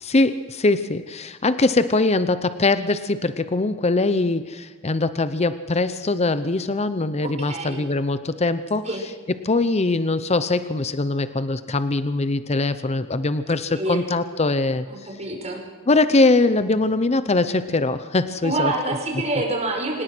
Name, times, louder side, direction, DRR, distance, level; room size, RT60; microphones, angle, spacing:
voice 1, 0.0-8.9 9.4-14.8 15.9-19.0, left 2 dB, 30° left, 12 dB, 0.7 m, -22 dB
voice 2, 7.2-7.8 8.9-9.0 13.8-14.0 14.9-15.6 18.4-20.0, right 2 dB, 35° right, 1 dB, 5.3 m, -27 dB
26.0 x 18.0 x 6.1 m, 1.5 s
head